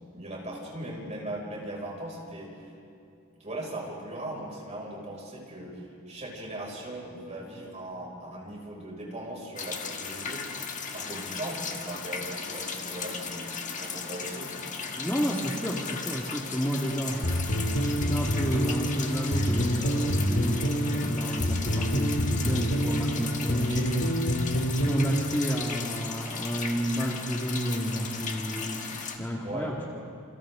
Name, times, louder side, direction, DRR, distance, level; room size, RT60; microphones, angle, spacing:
voice 1, 0.1-2.7 3.4-10.4 10.9-14.5 23.6-24.0 29.4-29.9, right 1 dB, 30° right, -3 dB, 6.1 m, -38 dB
sound 1, 9.6-29.2, left 5 dB, 35° left, 1.7 m, -36 dB
voice 2, 15.0-23.7 24.8-29.9, equal, 10° left, -3 dB, 1.9 m, -31 dB
sound 2, 17.2-25.7, equal, 70° left, 2.3 m, -27 dB
29.0 x 27.5 x 3.8 m, 2.7 s
head